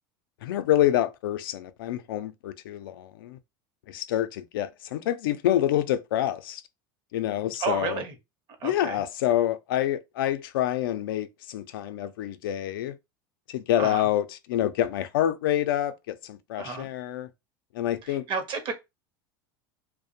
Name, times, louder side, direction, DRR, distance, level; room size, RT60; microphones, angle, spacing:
voice 1, 0.4-3.4 3.9-6.6 7.1-8.0 8.6-13.0 13.5-17.3 17.7-18.3, left 12 dB, 85° left, 0.4 m, -27 dB
voice 2, 7.6-8.1 8.6-9.0 13.8-14.1 16.6-16.9 18.0-18.7, right 4 dB, 45° right, 0.8 m, -31 dB
2.4 x 2.1 x 2.6 m
supercardioid pair, 110°, 11 cm